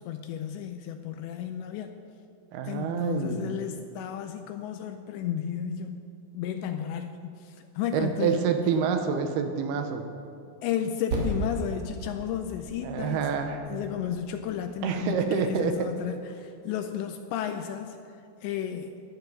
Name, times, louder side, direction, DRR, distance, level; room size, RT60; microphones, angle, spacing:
voice 1, 0.0-2.0 2.6-6.0 6.3-8.8 10.6-13.2 13.7-18.0 18.4-19.0, left 9 dB, 85° left, 7 dB, 2.6 m, -33 dB
voice 2, 2.5-3.6 7.9-10.1 12.8-13.7 14.8-15.9, right 6 dB, 80° right, 6 dB, 2.3 m, -27 dB
Percussion, 11.1-15.9, right 2 dB, 50° right, 2.2 m, -37 dB
14.0 x 11.0 x 5.4 m, 2.6 s
omnidirectional pair, 5.5 m